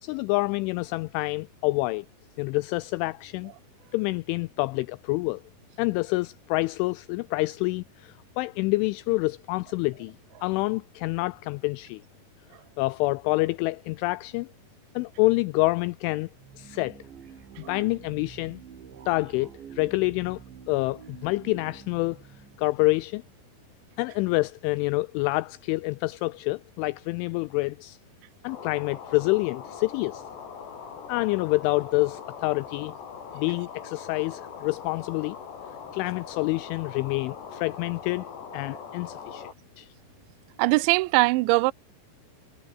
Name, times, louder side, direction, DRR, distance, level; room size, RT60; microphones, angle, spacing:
voice 1, 0.0-2.1 2.4-3.5 3.9-5.4 5.8-10.2 10.4-12.0 12.8-14.5 15.0-16.3 16.6-17.0 17.6-18.6 19.1-20.4 20.7-22.2 22.6-23.2 24.0-28.0 28.4-30.2 31.1-32.9 33.3-35.4 35.9-38.3 38.5-39.5 39.8-39.9, left 23 dB, 85° left, 2.8 m, -27 dB
sound 1, 16.4-23.5, right 8 dB, 60° right, 5.5 m, -47 dB
sound 2, 28.5-39.5, left 7 dB, 60° left, 6.1 m, -41 dB
voice 2, 40.6-41.7, right 23 dB, 80° right, 2.7 m, -21 dB
omnidirectional pair, 5.9 m